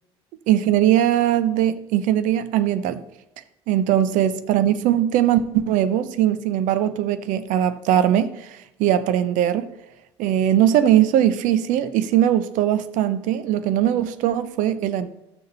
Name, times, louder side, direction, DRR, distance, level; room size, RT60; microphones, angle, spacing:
voice 1, 0.5-3.0 3.7-9.7 10.2-15.1, right 11 dB, 60° right, 0.8 m, -20 dB
13.0 x 6.5 x 4.2 m
hypercardioid pair, 60°, 15 cm